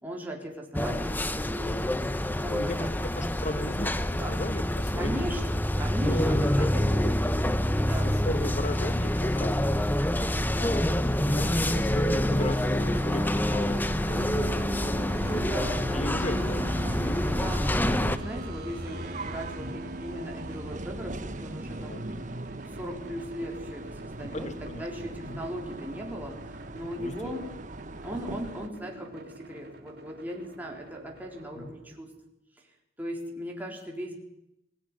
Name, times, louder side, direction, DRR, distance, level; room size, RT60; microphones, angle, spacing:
voice 1, 0.0-2.9 4.2-4.4 4.9-5.4 5.8-7.1 7.8-8.1 10.3-10.7 15.3-16.0 16.4-16.5 17.0-22.2 22.6-27.5 28.0-32.1 33.0-34.1, equal, 10° right, -1 dB, 4.0 m, -38 dB
sound 1, 0.7-18.2, left 1 dB, 10° left, 1.0 m, -27 dB
voice 2, 2.4-2.9 3.2-5.3 6.1-6.4 6.7-9.8 10.6-15.0 15.9-16.6 19.6-19.7 21.9-22.0 24.2-25.4 27.0-27.3 31.6-31.7, left 1 dB, 40° left, 9 dB, 2.0 m, -36 dB
sound 2, 12.2-28.7, right 2 dB, 45° right, 1.2 m, -40 dB
burning iceberg, 14.1-32.0, right 1 dB, 60° right, 2.9 m, -44 dB
22.0 x 16.5 x 9.9 m, 0.83 s
head